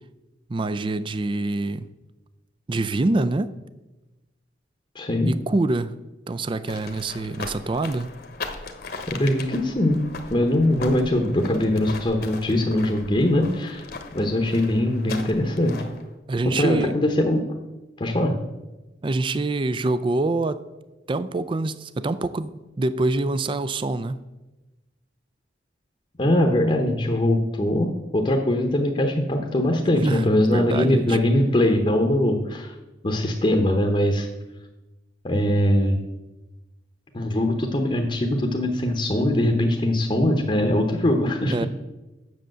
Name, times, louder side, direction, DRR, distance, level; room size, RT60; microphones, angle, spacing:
voice 1, 0.5-1.9 2.7-3.5 5.3-5.9 6.3-8.1 16.3-16.9 19.0-20.6 21.1-24.2 29.9-31.2 41.5-41.7, right 2 dB, 25° right, 0.4 m, -25 dB
voice 2, 4.9-5.3 9.1-10.0 10.3-13.9 14.1-15.8 16.4-17.4 18.0-18.4 26.2-32.7 33.0-34.3 35.2-36.0 37.1-41.7, left 1 dB, 30° left, 0.9 m, -22 dB
sound 1, 6.7-16.1, left 3 dB, 55° left, 1.1 m, -38 dB
7.7 x 6.7 x 7.6 m
head